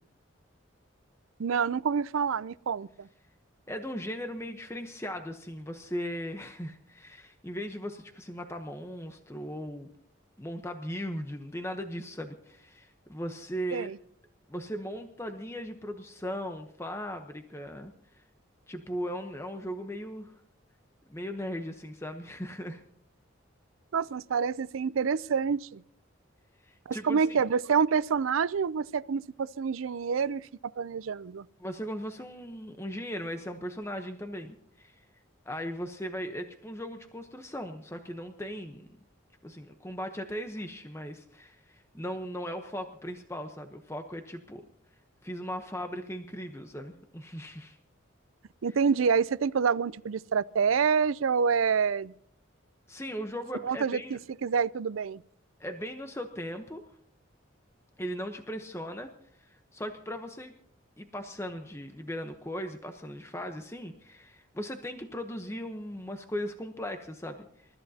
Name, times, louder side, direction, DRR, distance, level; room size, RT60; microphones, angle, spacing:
voice 1, 1.4-3.1 13.7-14.0 23.9-25.8 26.9-30.5 30.8-31.5 48.6-52.1 53.6-55.2, right 6 dB, 85° right, 0.5 m, -27 dB
voice 2, 3.7-9.9 10.4-13.9 14.5-17.9 18.7-20.3 21.1-22.8 26.6-27.4 31.6-35.0 35.5-38.9 39.4-44.6 45.2-47.8 52.9-54.2 55.6-56.8 58.0-59.1 59.4-60.5 61.0-67.5, equal, 15° left, 0.9 m, -38 dB
28.0 x 14.0 x 2.8 m
head